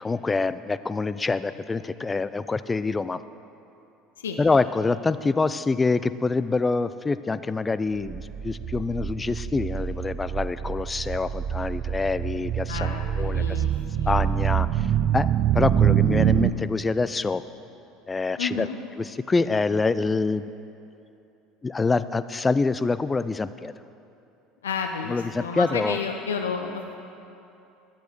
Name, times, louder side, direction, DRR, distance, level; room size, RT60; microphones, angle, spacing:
voice 1, 0.0-3.2 4.4-13.6 14.1-14.9 15.1-15.3 15.5-17.4 18.1-18.7 19.0-20.4 21.6-23.7 25.1-26.0, left 3 dB, 20° left, 14 dB, 0.4 m, -26 dB
sound 1, 8.1-16.5, right 10 dB, 45° right, 0.4 m, -25 dB
voice 2, 12.7-14.1 18.4-18.8 24.6-27.0, left 5 dB, 80° left, 5 dB, 0.6 m, -31 dB
11.0 x 8.1 x 6.2 m, 2.8 s
figure-of-eight pair, 65°, 0 cm